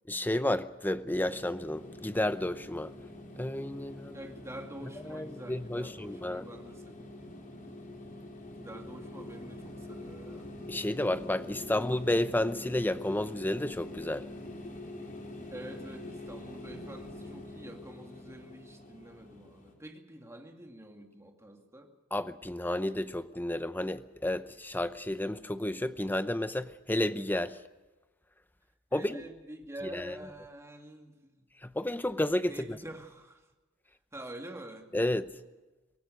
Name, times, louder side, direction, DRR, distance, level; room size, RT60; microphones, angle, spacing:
voice 1, 0.1-2.9 3.4-4.2 5.1-6.5 10.7-14.3 22.1-27.6 28.9-29.2 29.9-30.2 31.6-32.8 34.9-35.3, left 1 dB, 10° left, 0.7 m, -31 dB
sound 1, 1.1-19.7, left 1 dB, 40° left, 4.1 m, -45 dB
voice 2, 4.1-7.3 8.6-10.5 11.5-11.9 15.5-21.9 28.9-31.4 32.5-33.5 34.1-34.9, right 1 dB, 15° right, 2.4 m, -47 dB
24.0 x 18.0 x 6.5 m
head